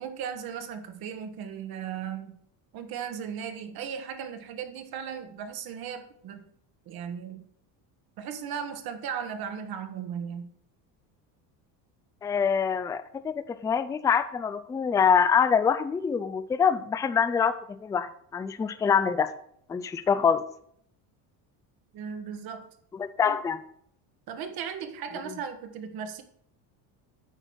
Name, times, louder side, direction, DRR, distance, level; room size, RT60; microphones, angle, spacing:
voice 1, 0.0-2.4 2.7-6.5 6.9-7.5 8.2-10.5 21.9-22.7 23.2-23.4 24.3-26.2, right 7 dB, 55° right, 8 dB, 1.3 m, -36 dB
voice 2, 12.2-19.3 19.7-20.4 22.9-23.6 25.3-25.4, left 7 dB, 10° left, 12 dB, 0.3 m, -25 dB
9.1 x 3.9 x 6.3 m, 0.66 s
supercardioid pair, 105°, 43 cm